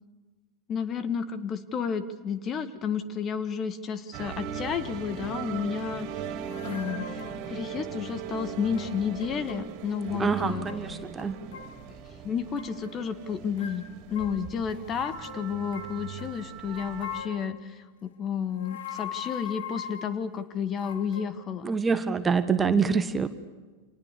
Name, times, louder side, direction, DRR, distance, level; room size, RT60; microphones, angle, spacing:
voice 1, 0.7-6.3 6.6-10.7 11.9-21.7, left 7 dB, 30° left, 13 dB, 1.8 m, -32 dB
sound 1, 4.1-17.2, right 7 dB, 40° right, 3.1 m, -39 dB
sound 2, 6.4-7.5 8.7-9.6 9.9-10.9 11.2-11.8 12.6-13.0 13.6-16.3 16.8-17.6 18.4-20.2 20.8-21.3, left 8 dB, 60° left, 2.7 m, -41 dB
voice 2, 10.2-11.4 21.6-23.3, right 5 dB, 15° right, 10 dB, 1.5 m, -25 dB
29.5 x 27.5 x 7.0 m, 1.3 s
figure-of-eight pair, 90°, 0 cm